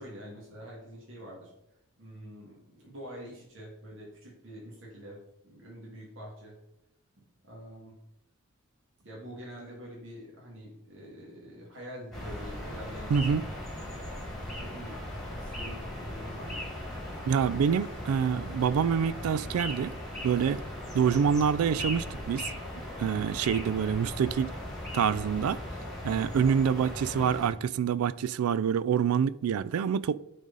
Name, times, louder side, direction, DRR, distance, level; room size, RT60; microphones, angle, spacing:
voice 1, 0.0-1.5 2.0-6.6 7.2-8.0 9.0-13.5 14.5-16.7, equal, 60° right, 1.9 m, -46 dB
sound 1, 12.1-27.5, left 1 dB, ahead, 1.7 m, -38 dB
voice 2, 13.1-13.4 17.3-19.9 20.2-20.6 20.9-22.5 23.0-24.5 24.9-25.6 26.0-30.1, right 7 dB, 85° right, 0.3 m, -26 dB
9.2 x 3.9 x 3.9 m
head